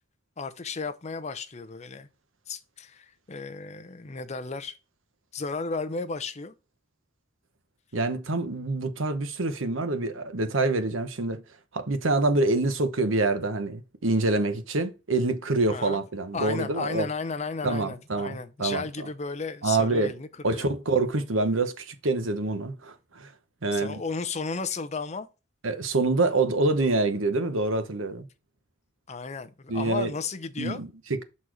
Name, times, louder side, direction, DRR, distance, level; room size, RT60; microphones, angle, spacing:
voice 1, 0.4-2.1 2.5-4.7 5.3-6.5 15.7-16.0 16.3-20.7 23.7-25.3 29.1-30.8, left 4 dB, 35° left, 0.7 m, -34 dB
voice 2, 7.9-11.4 11.7-17.1 17.6-18.9 19.6-20.1 20.4-23.3 23.6-24.0 25.6-28.3 29.7-30.1 30.6-31.2, right 2 dB, 90° right, 1.0 m, -26 dB
6.4 x 4.2 x 4.8 m
head